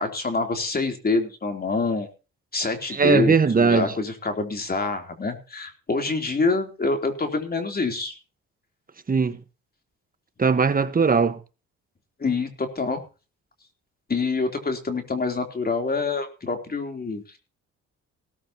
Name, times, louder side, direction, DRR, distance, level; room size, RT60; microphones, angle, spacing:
voice 1, 0.0-2.1 2.5-8.1 12.2-13.0 14.1-17.4, left 3 dB, 30° left, 3.5 m, -26 dB
voice 2, 2.9-3.9 9.1-9.4 10.4-11.4, right 5 dB, 30° right, 1.4 m, -19 dB
17.5 x 13.5 x 3.0 m
cardioid pair, 90°, 30 cm